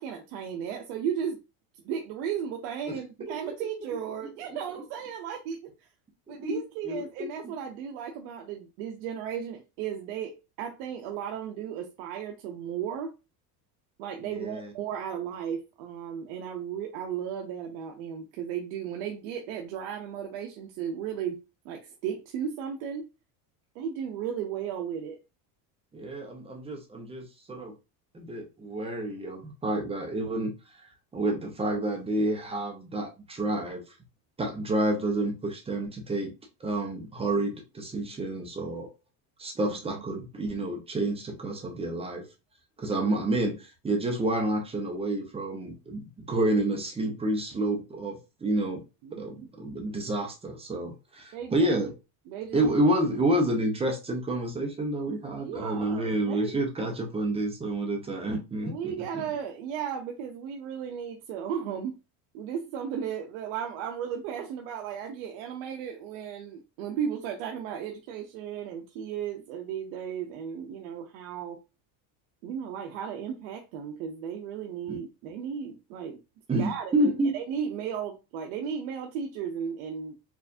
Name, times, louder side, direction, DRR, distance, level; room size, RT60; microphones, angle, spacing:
voice 1, 0.0-1.4 1.8-5.7 6.3-13.1 14.0-21.4 21.6-23.0 23.7-25.2 39.6-40.0 42.9-43.1 49.0-49.5 51.3-51.8 52.3-52.8 55.4-56.5 58.6-61.9 62.3-71.6 72.4-76.2 76.5-80.1, right 8 dB, 75° right, 0.7 m, -35 dB
voice 2, 6.3-6.6 6.8-7.3 14.2-14.7 25.9-27.7 28.1-30.5 31.1-33.8 34.4-36.3 36.6-38.9 39.4-42.2 42.8-48.8 49.2-51.9 52.5-58.9 74.9-75.0 76.5-77.3, right 1 dB, 15° right, 0.7 m, -29 dB
4.6 x 2.4 x 2.6 m
cardioid pair, 145°, 45 cm